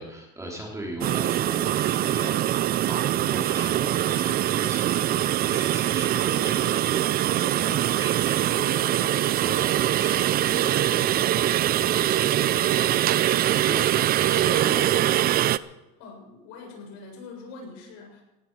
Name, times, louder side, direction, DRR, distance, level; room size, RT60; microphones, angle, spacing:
voice 1, 0.0-2.5 2.9-15.2, right 1 dB, 10° right, -1 dB, 3.3 m, -38 dB
sound 1, 1.0-15.6, right 12 dB, 30° right, 0.4 m, -23 dB
voice 2, 16.0-18.2, left 4 dB, 60° left, 0 dB, 7.3 m, -43 dB
18.0 x 14.5 x 4.7 m, 1.0 s
cardioid pair, 145°, 31 cm